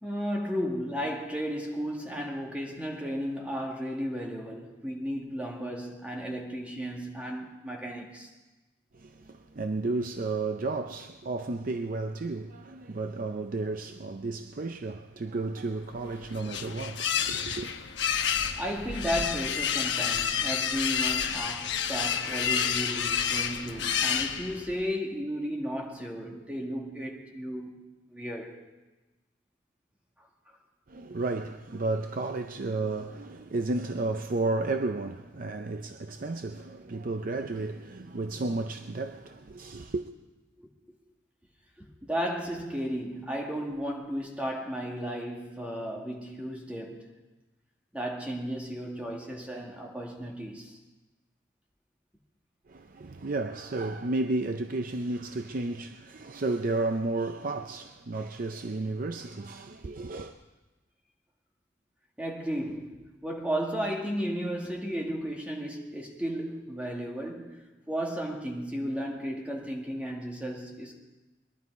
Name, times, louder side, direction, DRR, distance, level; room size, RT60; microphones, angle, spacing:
voice 1, 0.0-8.3 18.6-27.7 28.1-28.6 30.2-30.3 40.6-40.7 41.8-47.1 47.9-50.8 62.2-71.0, equal, 5° right, 1.9 m, -34 dB
voice 2, 8.9-17.8 30.9-40.1 52.7-60.3, right 2 dB, 50° right, 0.5 m, -32 dB
sound 1, 15.9-24.8, left 7 dB, 75° left, 1.0 m, -29 dB
22.0 x 11.5 x 4.7 m
head